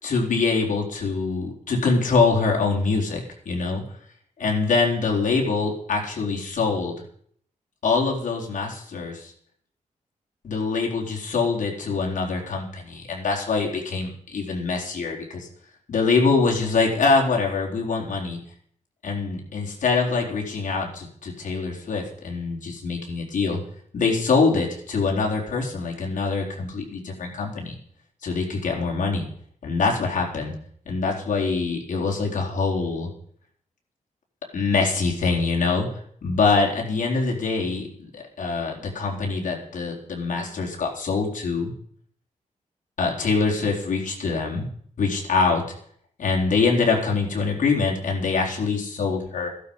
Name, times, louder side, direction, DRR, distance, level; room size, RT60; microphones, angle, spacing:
voice 1, 0.0-3.8 4.4-6.9 7.8-9.3 10.4-15.5 15.9-18.4 19.0-23.6 23.9-27.8 28.2-29.3 29.6-30.5 30.9-33.1 34.5-35.9 36.2-37.9 38.1-41.7 43.0-44.7 45.0-45.6 46.2-49.5, left 4 dB, 70° left, -1 dB, 4.0 m, -24 dB
15.5 x 11.5 x 5.5 m, 0.63 s
wide cardioid pair, 150°, 14 cm